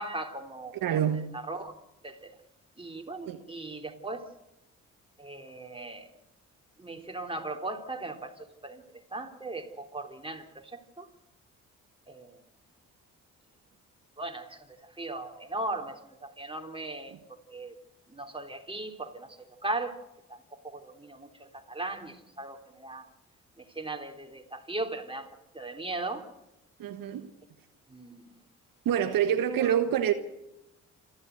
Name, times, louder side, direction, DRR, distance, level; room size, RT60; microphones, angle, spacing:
voice 1, 0.0-1.7 2.0-2.4 2.8-4.3 5.2-6.1 6.8-11.1 12.1-12.4 14.2-17.2 17.5-17.7 18.1-20.0 20.3-23.1 23.6-25.3 25.5-26.3 27.9-28.4 29.6-29.8, right 2 dB, 15° right, 3.7 m, -38 dB
voice 2, 0.8-1.4 3.3-3.4 26.8-27.3 28.8-30.1, right 9 dB, 70° right, 1.5 m, -26 dB
27.5 x 12.0 x 8.1 m
hypercardioid pair, 50°, 35 cm